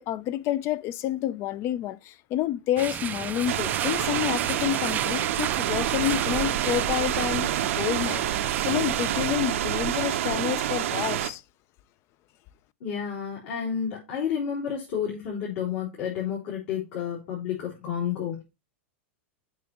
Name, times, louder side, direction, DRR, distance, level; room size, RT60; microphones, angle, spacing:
voice 1, 0.0-11.4, left 12 dB, 40° left, 0.4 m, -29 dB
sound 1, 2.8-9.4, right 10 dB, 25° right, 0.3 m, -33 dB
sound 2, 3.5-11.3, right 11 dB, 80° right, 0.7 m, -27 dB
voice 2, 12.8-18.4, left 8 dB, 70° left, 3.8 m, -30 dB
7.3 x 5.9 x 2.9 m
supercardioid pair, 135°, 7 cm